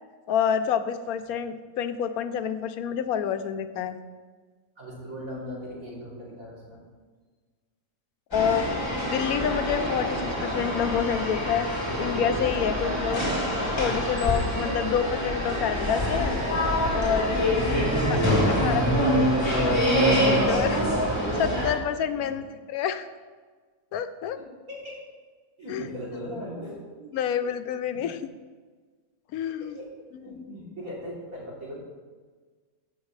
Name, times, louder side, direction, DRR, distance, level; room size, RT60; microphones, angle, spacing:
voice 1, 0.3-4.0 8.3-8.7 9.1-11.7 12.0-13.2 13.8-16.4 16.9-17.6 18.1-18.2 18.5-20.8 21.4-23.1 23.9-24.4 25.7-25.8 27.1-28.2 29.3-29.8, left 8 dB, 90° left, 10 dB, 1.1 m, -28 dB
voice 2, 4.8-6.8 12.9-13.2 14.8-14.9 17.6-17.9 22.1-22.4 24.4-25.0 25.6-27.1 27.4-27.5 27.9-28.0 29.6-31.8, equal, 70° right, -7 dB, 3.8 m, -39 dB
sound 1, 8.3-21.7, equal, 20° left, 2.6 m, -25 dB
15.5 x 6.3 x 3.3 m, 1.5 s
omnidirectional pair, 1.5 m